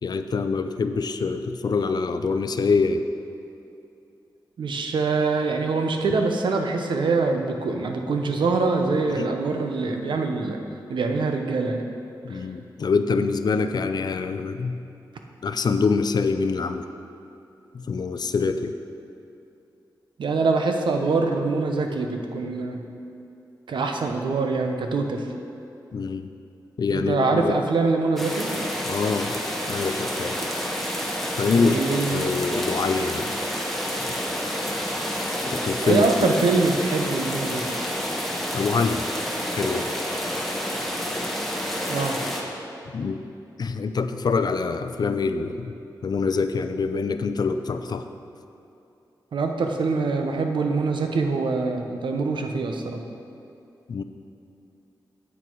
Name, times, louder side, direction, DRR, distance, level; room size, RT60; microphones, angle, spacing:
voice 1, 0.0-3.1 9.1-9.3 12.2-14.8 15.4-16.9 17.7-18.8 25.9-26.3 26.8-27.6 28.9-29.4 29.7-30.4 31.3-31.8 32.1-33.3 35.5-36.1 38.5-39.1 39.6-39.9 42.9-43.2 43.6-45.7 46.0-48.1 53.9-54.0, left 4 dB, 60° left, 9 dB, 0.5 m, -25 dB
voice 2, 4.6-10.6 10.9-11.8 12.3-12.4 20.2-22.8 23.7-25.3 26.9-28.5 31.5-32.3 35.8-37.6 41.9-42.2 49.3-53.0, right 3 dB, 85° right, 4 dB, 0.8 m, -24 dB
sound 1, 28.2-42.4, equal, ahead, 1.2 m, -29 dB
8.4 x 8.3 x 4.6 m, 2.7 s
wide cardioid pair, 90°, 8 cm